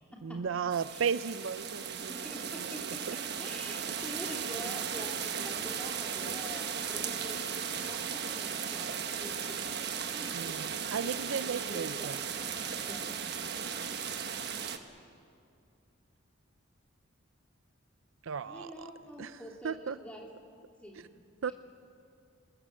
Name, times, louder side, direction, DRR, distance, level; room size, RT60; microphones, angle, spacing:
voice 1, 0.2-2.1 2.4-2.7 3.1-3.2 3.9-4.0 4.6-4.8 10.3-12.2 18.2-18.9 19.2-19.4 19.6-20.0 21.4-21.5, right 6 dB, 65° right, 15 dB, 0.5 m, -35 dB
sound 1, 0.7-14.8, right 7 dB, 50° right, 1.3 m, -36 dB
voice 2, 2.0-3.0 3.4-9.7 10.1-10.4 10.7-12.2 12.6-13.3 18.4-20.3 20.8-21.0, equal, 5° left, -1 dB, 3.0 m, -46 dB
26.5 x 20.0 x 7.6 m, 2.4 s
head